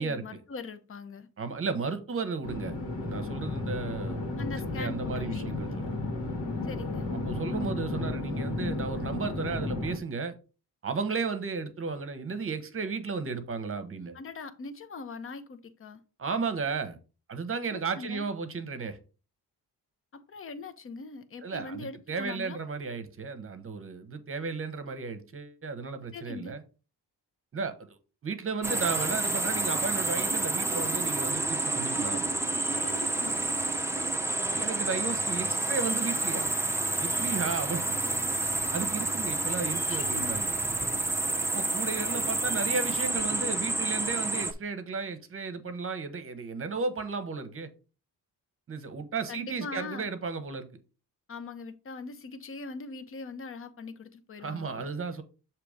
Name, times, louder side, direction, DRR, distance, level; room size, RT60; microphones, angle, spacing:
voice 1, 0.0-1.3 4.4-5.6 6.6-7.1 14.1-16.0 17.7-18.3 20.1-22.6 26.1-26.5 32.8-33.5 39.9-40.4 49.3-50.1 51.3-54.9, left 4 dB, 35° left, 0.7 m, -41 dB
voice 2, 1.4-4.2 4.7-5.9 7.3-10.3 10.8-14.2 16.2-17.0 17.3-19.0 21.4-26.6 27.5-28.0 28.2-32.2 34.5-36.5 37.0-37.9 38.7-40.5 41.5-47.7 48.7-50.7 54.4-55.2, right 4 dB, 35° right, 0.9 m, -34 dB
sound 1, 2.4-10.0, left 2 dB, 85° left, 1.7 m, -33 dB
sound 2, 28.6-44.5, right 2 dB, 5° right, 0.6 m, -29 dB
6.7 x 2.9 x 4.9 m
cardioid pair, 110°, 38 cm